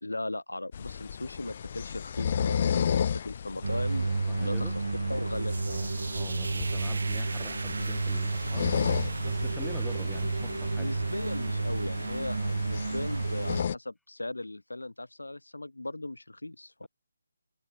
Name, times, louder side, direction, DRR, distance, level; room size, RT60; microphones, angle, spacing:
voice 1, 0.0-4.7 5.1-5.8 10.8-16.9, left 2 dB, 85° left, 2.2 m, -38 dB
sound 1, 0.7-13.7, left 8 dB, 40° left, 0.3 m, -34 dB
sound 2, 3.6-13.6, right 3 dB, 65° right, 0.5 m, -31 dB
voice 2, 4.3-4.8 5.7-8.7 9.2-10.9, left 2 dB, ahead, 1.1 m, -46 dB
figure-of-eight pair, 150°, 0 cm